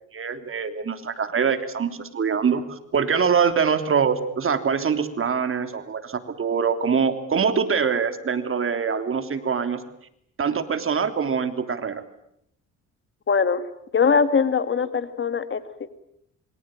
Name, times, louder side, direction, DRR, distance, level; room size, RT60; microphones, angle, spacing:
voice 1, 0.1-9.8 10.4-12.0, right 6 dB, 45° right, 9 dB, 3.2 m, -24 dB
voice 2, 13.3-13.7 13.9-15.9, left 5 dB, 40° left, 11 dB, 2.3 m, -22 dB
27.5 x 24.0 x 8.9 m, 0.74 s
cardioid pair, 90°, 30 cm